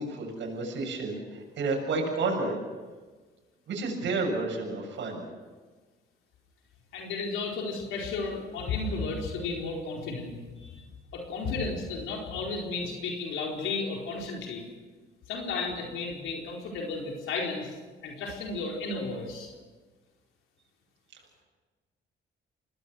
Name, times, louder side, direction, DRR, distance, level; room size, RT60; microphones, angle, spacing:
voice 1, 0.0-2.6 3.7-5.2, right 3 dB, 65° right, 1 dB, 7.3 m, -31 dB
voice 2, 6.9-10.8 11.1-14.6 15.3-17.7 18.0-19.5, left 3 dB, 85° left, -1 dB, 4.5 m, -33 dB
26.5 x 19.5 x 6.4 m, 1.3 s
cardioid pair, 90°, 20 cm